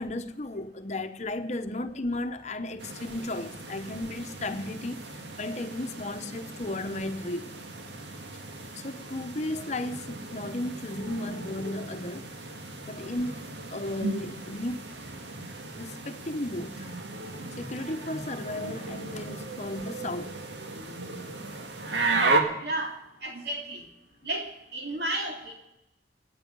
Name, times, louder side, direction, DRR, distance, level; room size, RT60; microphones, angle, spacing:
voice 1, 0.0-7.5 8.7-12.4 12.9-13.4 13.7-15.0 15.8-16.9 17.6-20.4, left 1 dB, 40° left, 0.9 m, -34 dB
sound 1, 2.8-22.4, right 3 dB, 85° right, 1.9 m, -35 dB
voice 2, 22.6-23.0 23.2-23.8 24.2-25.5, right 1 dB, 65° right, 2.9 m, -33 dB
25.5 x 8.9 x 5.4 m
head